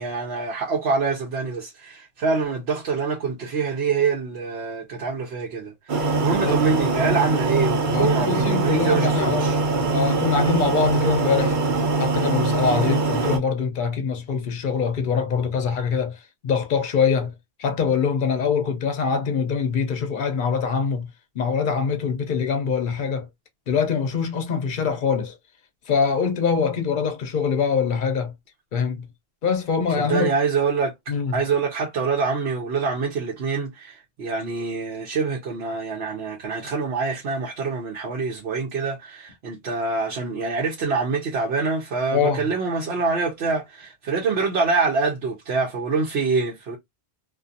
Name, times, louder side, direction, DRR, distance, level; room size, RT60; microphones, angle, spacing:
voice 1, 0.0-9.6 30.0-30.9 31.3-46.8, right 4 dB, 80° right, 1.0 m, -25 dB
sound 1, 5.9-13.4, right 3 dB, 55° right, 0.9 m, -22 dB
voice 2, 7.9-9.5 9.9-11.6 12.0-17.3 17.6-21.1 21.3-23.3 23.7-25.4 25.9-28.3 28.7-29.1 29.4-30.3 31.1-31.4 42.1-42.4, left 6 dB, 55° left, 0.8 m, -24 dB
2.5 x 2.4 x 2.5 m
omnidirectional pair, 1.1 m